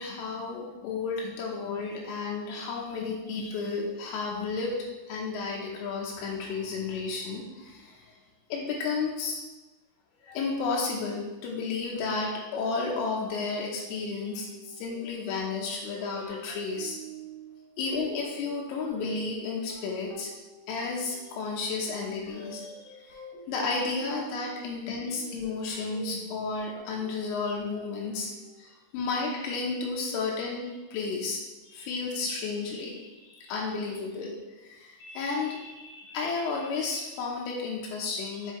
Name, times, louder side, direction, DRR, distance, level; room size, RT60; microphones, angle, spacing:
voice 1, 0.0-8.1 8.5-9.4 10.2-17.0 17.8-20.3 20.7-23.2 23.5-28.3 28.6-31.4 31.7-34.3 34.6-38.5, left 4 dB, 85° left, -2 dB, 3.4 m, -32 dB
sound 1, 13.2-28.6, right 3 dB, 60° left, 2.4 m, -48 dB
7.5 x 5.2 x 3.1 m, 1.1 s
omnidirectional pair, 5.7 m